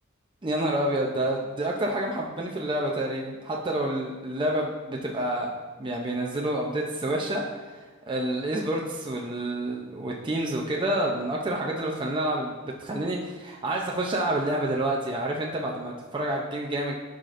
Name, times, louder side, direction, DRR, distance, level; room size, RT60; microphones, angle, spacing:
voice 1, 0.4-5.5 5.8-17.0, right 1 dB, 25° right, -1 dB, 0.5 m, -28 dB
11.5 x 5.0 x 2.5 m, 1.4 s
head